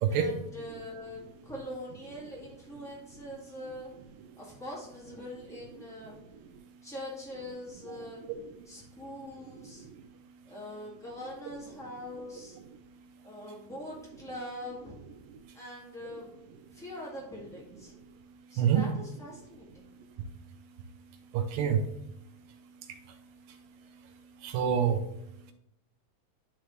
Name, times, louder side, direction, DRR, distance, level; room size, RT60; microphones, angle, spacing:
voice 1, 0.1-3.9 4.4-6.2 6.8-8.2 8.6-9.9 10.4-12.6 13.2-14.9 15.5-16.3 16.7-18.0 18.5-19.8, left 1 dB, ahead, -6 dB, 1.0 m, -43 dB
voice 2, 21.3-21.8 24.4-25.0, right 8 dB, 80° right, 7 dB, 2.2 m, -26 dB
10.5 x 4.8 x 3.2 m, 0.81 s
omnidirectional pair, 4.1 m